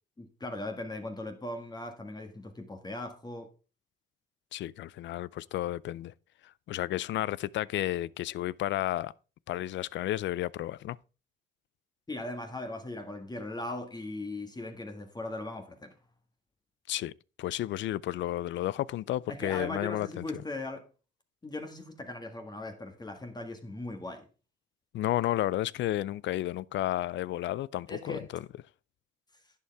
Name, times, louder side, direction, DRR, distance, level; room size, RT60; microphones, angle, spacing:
voice 1, 0.2-3.5 12.1-16.0 19.3-20.9 21.4-24.2 27.9-28.2, left 2 dB, 20° left, 1.7 m, -39 dB
voice 2, 4.5-6.1 6.4-9.1 9.5-11.0 16.9-17.1 17.4-20.4 24.9-28.5, left 14 dB, 70° left, 0.4 m, -32 dB
11.0 x 8.4 x 3.4 m
cardioid pair, 90°, 20 cm